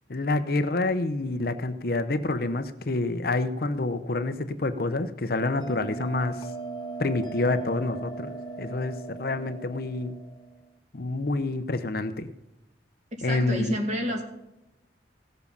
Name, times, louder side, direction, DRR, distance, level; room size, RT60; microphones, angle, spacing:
voice 1, 0.1-6.4 7.0-10.2 10.9-12.3 13.2-13.7, left 2 dB, 55° left, 10 dB, 0.7 m, -28 dB
Bell, 5.6-10.7, right 3 dB, 25° left, 0.9 m, -38 dB
voice 2, 13.3-14.2, equal, 40° right, 2 dB, 2.3 m, -29 dB
16.5 x 7.2 x 5.5 m, 0.91 s
head